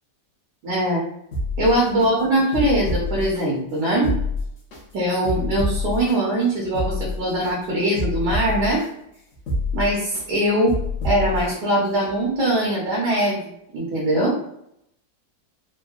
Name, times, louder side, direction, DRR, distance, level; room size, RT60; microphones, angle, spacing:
voice 1, 0.6-1.0 1.6-4.2 4.9-8.8 9.7-10.8 11.0-14.4, right 1 dB, 65° right, -5 dB, 1.4 m, -22 dB
sound 1, 1.3-2.1 2.5-3.4 3.9-4.8 5.2-6.2 6.6-7.5 8.0-8.9 9.3-10.2 10.7-11.6 12.0-12.1, left 2 dB, 50° left, 0.9 m, -26 dB
3.6 x 2.1 x 2.4 m, 0.75 s
omnidirectional pair, 2.0 m